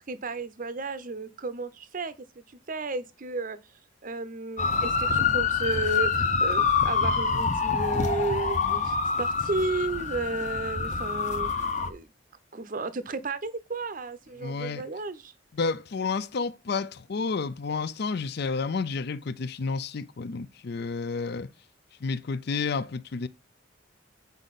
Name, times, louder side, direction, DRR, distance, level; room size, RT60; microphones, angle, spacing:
voice 1, 0.0-2.1 2.7-3.6 4.0-12.1 12.5-15.3, right 3 dB, 45° right, 0.7 m, -33 dB
sound 1, 4.6-11.9, left 5 dB, 40° left, 0.8 m, -26 dB
voice 2, 14.4-14.8 15.5-21.5 22.0-23.3, left 4 dB, 55° left, 0.5 m, -30 dB
8.2 x 4.9 x 4.1 m
head